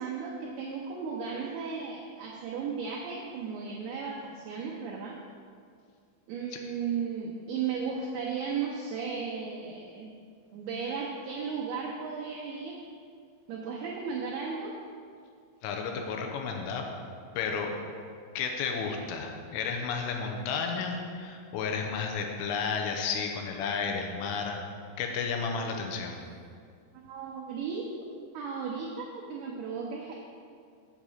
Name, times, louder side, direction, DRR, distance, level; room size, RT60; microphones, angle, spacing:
voice 1, 0.0-5.2 6.3-10.1 10.5-12.8 13.5-14.7 27.0-27.9 28.3-30.2, right 6 dB, 85° right, -3 dB, 2.3 m, -35 dB
voice 2, 15.6-16.9 17.3-17.7 18.4-24.6 25.0-26.2, left 5 dB, 85° left, 2 dB, 3.4 m, -32 dB
7.3 x 6.6 x 7.4 m, 2.2 s
omnidirectional pair, 5.7 m